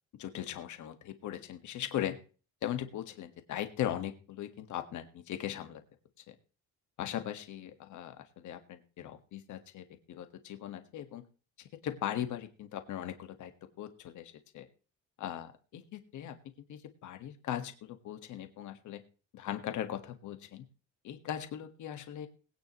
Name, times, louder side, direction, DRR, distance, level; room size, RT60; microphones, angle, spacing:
voice 1, 0.2-2.2 2.6-5.8 6.3-6.4 7.0-11.2 11.6-13.5 13.8-14.7 15.2-19.0 19.3-20.7 21.0-22.3, left 11 dB, 65° left, 8 dB, 1.6 m, -39 dB
21.0 x 9.5 x 3.0 m, 0.36 s
cardioid pair, 175°, 32 cm